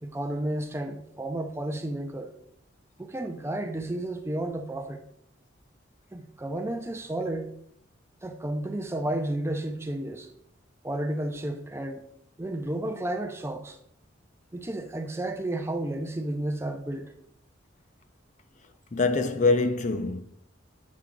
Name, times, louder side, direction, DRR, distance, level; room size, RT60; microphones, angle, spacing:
voice 1, 0.0-2.3 3.0-5.0 6.1-7.5 8.2-10.3 10.8-12.1 12.4-13.8 14.5-17.1, right 1 dB, 15° right, 0.5 m, -32 dB
voice 2, 18.9-20.2, left 3 dB, 40° left, 0.5 m, -24 dB
7.4 x 4.7 x 3.9 m
head